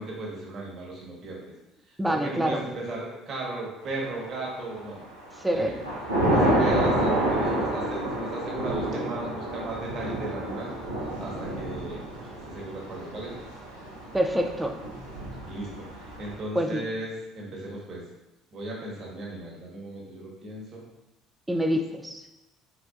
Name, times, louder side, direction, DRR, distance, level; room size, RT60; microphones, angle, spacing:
voice 1, 0.0-1.4 2.1-5.0 5.5-5.7 6.3-10.7 11.2-12.0 12.5-13.3 15.4-15.8 16.2-18.0 18.5-20.8, right 2 dB, 40° right, -3 dB, 1.4 m, -35 dB
voice 2, 2.0-2.6 5.3-5.8 12.2-12.3 14.1-14.8 16.5-16.8 21.5-22.2, equal, 10° right, 4 dB, 0.5 m, -26 dB
Thunder / Rain, 4.2-4.8 5.2-16.3, right 1 dB, 85° right, 0.8 m, -29 dB
4.3 x 4.1 x 2.5 m, 0.97 s
figure-of-eight pair, 60°, 0 cm